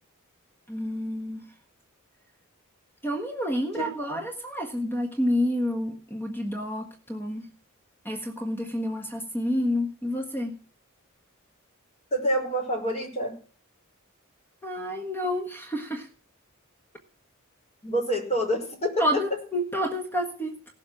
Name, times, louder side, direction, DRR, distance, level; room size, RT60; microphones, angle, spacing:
voice 1, 0.7-1.4 3.0-7.5 8.0-10.6 14.6-16.1 19.0-20.6, equal, 10° left, 2 dB, 1.5 m, -29 dB
voice 2, 3.7-4.1 12.1-13.3 17.8-19.2, equal, 30° left, 0 dB, 5.2 m, -27 dB
17.5 x 7.4 x 6.1 m, 0.38 s
head